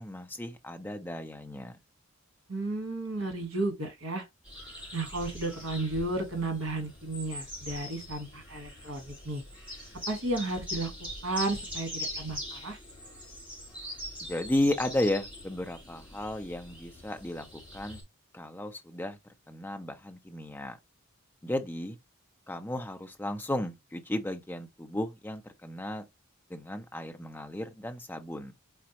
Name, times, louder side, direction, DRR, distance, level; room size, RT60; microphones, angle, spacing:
voice 1, 0.0-1.8 14.3-18.0 18.3-19.2 19.5-20.8 21.4-22.0 22.5-26.0 26.5-28.5, left 1 dB, 10° left, 0.5 m, -34 dB
voice 2, 2.5-4.3 4.9-9.4 10.1-12.8, right 2 dB, 65° right, 1.4 m, -33 dB
sound 1, 4.4-18.0, left 1 dB, 5° right, 2.2 m, -42 dB
4.3 x 3.5 x 2.9 m
head